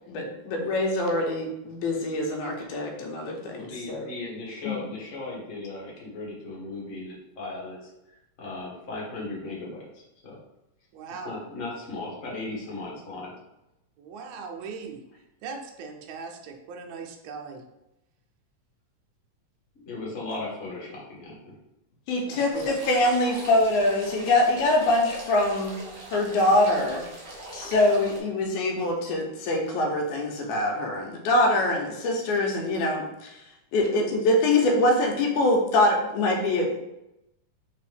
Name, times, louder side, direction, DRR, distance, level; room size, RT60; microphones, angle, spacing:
voice 1, 0.1-4.1 4.6-4.8 22.1-25.7 26.1-27.0 27.5-33.4 33.7-36.8, left 1 dB, 90° left, 1 dB, 2.1 m, -24 dB
voice 2, 3.5-7.9 8.4-10.4 11.2-13.3 19.7-21.6, left 2 dB, 45° left, -5 dB, 1.0 m, -37 dB
voice 3, 10.9-11.4 14.0-15.0 15.4-17.6 22.2-22.5 33.8-33.9, right 5 dB, 80° right, 3 dB, 1.9 m, -39 dB
sound 1, 22.5-28.2, right 1 dB, 60° right, 1.2 m, -42 dB
4.6 x 3.4 x 3.4 m, 0.91 s
omnidirectional pair, 3.4 m